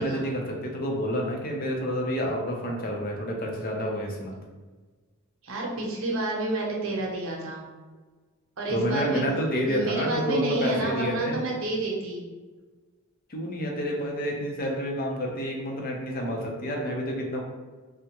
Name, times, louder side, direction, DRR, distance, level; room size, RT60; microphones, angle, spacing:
voice 1, 0.0-4.4 8.7-11.4 13.3-17.4, equal, 45° left, 0 dB, 0.6 m, -29 dB
voice 2, 5.4-7.7 8.6-9.2 9.6-12.3, right 2 dB, 75° right, -2 dB, 0.8 m, -29 dB
3.5 x 2.1 x 2.8 m, 1.3 s
head